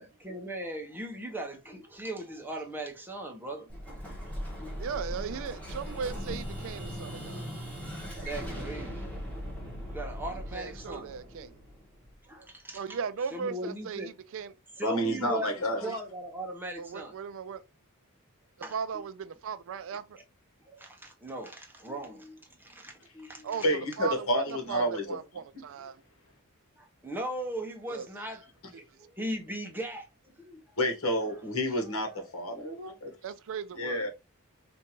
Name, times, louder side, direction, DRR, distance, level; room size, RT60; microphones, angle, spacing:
voice 1, 0.0-3.7 4.6-4.7 8.1-9.1 9.8-11.1 12.2-13.0 13.3-14.1 14.8-17.1 18.6-18.7 20.6-23.7 25.8-25.9 26.8-30.6 31.2-31.3, right 1 dB, 10° right, 0.8 m, -39 dB
Explosion, 3.7-12.4, equal, 5° left, 1.4 m, -39 dB
voice 2, 4.8-7.5 10.5-11.6 12.7-14.5 15.8-16.0 16.8-17.6 18.7-20.2 23.4-23.6 24.0-26.0 27.9-28.1 33.2-34.0, right 6 dB, 65° right, 0.4 m, -37 dB
voice 3, 14.8-15.9 23.6-25.0 30.8-33.1 33.8-34.1, equal, 70° left, 1.3 m, -29 dB
4.4 x 2.6 x 2.9 m
head